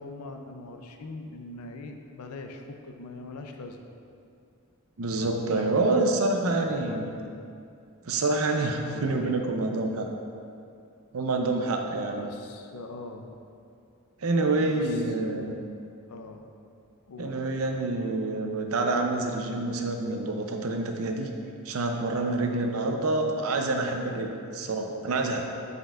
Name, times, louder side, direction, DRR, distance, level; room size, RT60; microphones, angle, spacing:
voice 1, 0.0-3.8 5.3-6.0 6.3-7.3 8.9-9.6 12.1-13.3 14.5-15.6 16.1-16.5 17.1-17.4 22.5-22.7, left 3 dB, 90° left, 5 dB, 0.5 m, -42 dB
voice 2, 5.0-7.1 8.0-10.1 11.1-12.3 14.2-15.6 17.2-21.3 21.7-25.4, right 2 dB, 70° right, 3 dB, 0.6 m, -27 dB
7.6 x 5.3 x 2.4 m, 2.5 s
head